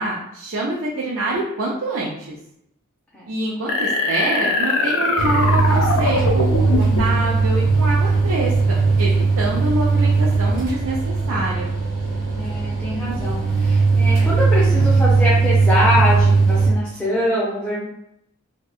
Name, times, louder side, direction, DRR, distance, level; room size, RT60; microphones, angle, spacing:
voice 1, 0.0-2.1 3.3-11.7, right 2 dB, 85° right, -4 dB, 0.5 m, -26 dB
sound 1, 3.7-7.2, left 2 dB, 80° left, 0.5 m, -21 dB
sound 2, 5.2-16.7, right 4 dB, 70° right, 1.2 m, -18 dB
voice 2, 12.3-17.9, left 1 dB, 5° left, -9 dB, 0.5 m, -23 dB
2.7 x 2.3 x 2.4 m, 0.76 s
head